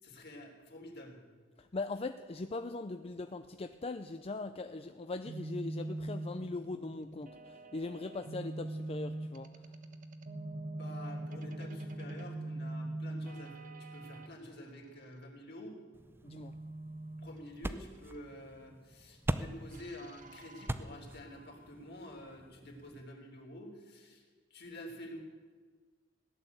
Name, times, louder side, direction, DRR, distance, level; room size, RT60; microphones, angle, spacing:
voice 1, 0.0-1.2 10.4-15.8 17.1-25.2, left 1 dB, 55° left, 1 dB, 3.4 m, -49 dB
voice 2, 1.6-9.6 16.2-16.6, left 3 dB, 30° left, 8 dB, 0.5 m, -40 dB
sound 1, 5.3-14.3 16.3-18.2 19.7-21.7, right 2 dB, 40° right, 1.1 m, -43 dB
sound 2, 15.9-23.0, right 1 dB, 10° right, 0.6 m, -42 dB
16.5 x 11.0 x 8.0 m, 1.5 s
head